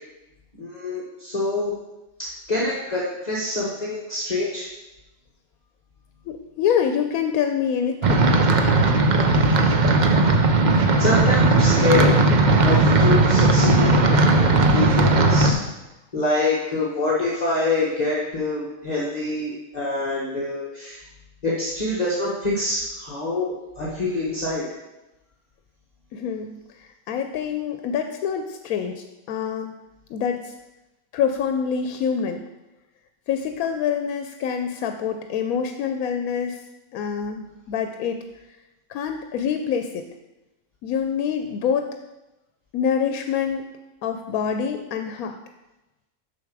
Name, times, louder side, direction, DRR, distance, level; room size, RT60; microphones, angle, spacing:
voice 1, 0.6-1.7 2.2-4.7 9.5-10.3 11.0-12.1 12.6-15.6 16.1-21.0 21.4-24.7, left 2 dB, 30° left, -7 dB, 1.4 m, -26 dB
voice 2, 6.3-8.3 26.1-29.7 30.1-30.5 31.1-32.4 33.3-36.6 36.9-38.4 38.9-40.0 40.8-41.9 42.7-43.7 44.0-45.4, left 7 dB, 90° left, 6 dB, 1.0 m, -26 dB
sound 1, 8.0-15.5, right 2 dB, 45° right, 0.6 m, -17 dB
7.0 x 6.7 x 4.7 m, 1.0 s
omnidirectional pair, 1.5 m